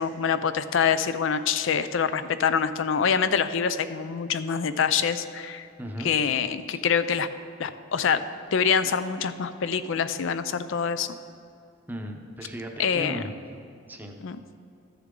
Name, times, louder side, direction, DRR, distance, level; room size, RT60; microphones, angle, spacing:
voice 1, 0.0-5.7 6.0-7.3 7.6-8.2 8.5-11.2 12.8-13.2 14.2-14.4, left 6 dB, 65° left, 12 dB, 0.4 m, -25 dB
voice 2, 5.8-6.1 6.7-6.8 11.9-13.4 13.9-14.2, equal, 10° right, 2 dB, 0.7 m, -36 dB
13.5 x 6.8 x 3.8 m, 2.5 s
head